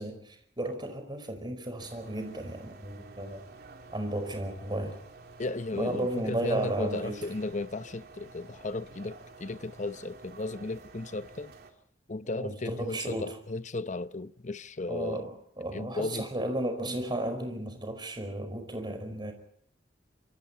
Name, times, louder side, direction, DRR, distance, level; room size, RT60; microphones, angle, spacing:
voice 1, 0.0-3.4 3.9-5.0 5.7-7.2 12.4-13.3 14.9-19.3, right 1 dB, 25° right, 5.0 m, -34 dB
sound 1, 1.8-11.7, right 3 dB, 60° right, 3.3 m, -51 dB
voice 2, 5.4-11.5 12.1-15.3 15.7-16.3, left 2 dB, 45° left, 0.8 m, -35 dB
27.5 x 26.0 x 4.4 m
head